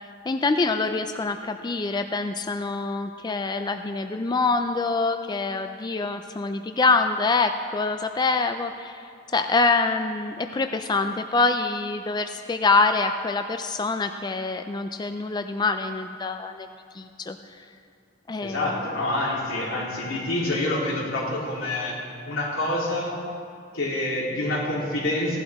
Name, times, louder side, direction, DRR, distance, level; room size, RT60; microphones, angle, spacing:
voice 1, 0.3-16.7 16.9-17.7 18.3-18.8, left 3 dB, 20° left, 7 dB, 0.3 m, -25 dB
voice 2, 18.4-23.2 23.7-25.4, left 1 dB, 85° left, -5 dB, 3.2 m, -27 dB
17.0 x 11.5 x 3.6 m, 2.3 s
head